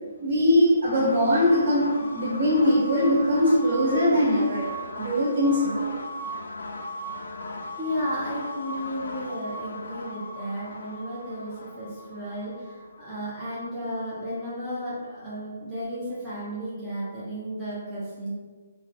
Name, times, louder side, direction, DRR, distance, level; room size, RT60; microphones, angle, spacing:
voice 1, 0.2-4.7 5.0-6.0, equal, 40° right, -4 dB, 0.8 m, -21 dB
sound 1, 0.8-14.4, left 1 dB, 65° left, 0.4 m, -38 dB
voice 2, 7.8-18.3, equal, 5° right, -12 dB, 0.5 m, -33 dB
3.8 x 2.1 x 2.6 m, 1.4 s
hypercardioid pair, 175°, 0 cm